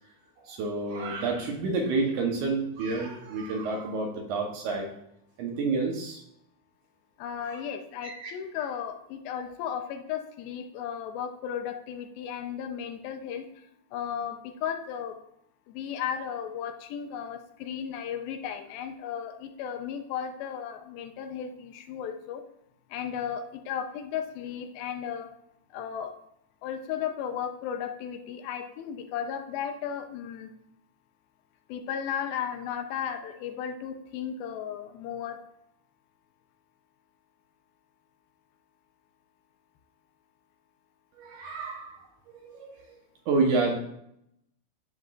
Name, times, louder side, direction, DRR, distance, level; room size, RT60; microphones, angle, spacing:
voice 1, 0.4-4.9 5.4-6.2 7.5-7.6 8.0-8.3 41.1-43.0 43.3-43.8, right 3 dB, 70° right, 1 dB, 2.2 m, -29 dB
voice 2, 7.2-13.5 13.9-15.2 15.7-22.4 22.9-25.3 25.7-26.1 26.6-30.5 31.7-35.4, left 8 dB, 85° left, 6 dB, 2.6 m, -35 dB
9.7 x 7.5 x 2.5 m, 0.75 s
omnidirectional pair, 4.2 m